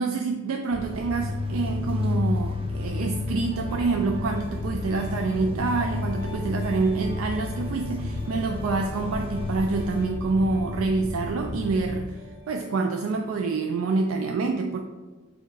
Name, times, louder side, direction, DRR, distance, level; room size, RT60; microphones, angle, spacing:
voice 1, 0.0-12.1 12.5-14.8, right 3 dB, 85° right, 3 dB, 0.4 m, -27 dB
sound 1, 0.7-12.0, left 3 dB, 75° left, 0.5 m, -31 dB
sound 2, 0.8-10.1, right 1 dB, 25° right, 0.4 m, -46 dB
Piano, 2.9-12.6, equal, 55° right, 1.3 m, -44 dB
4.4 x 2.3 x 4.7 m, 1.3 s
head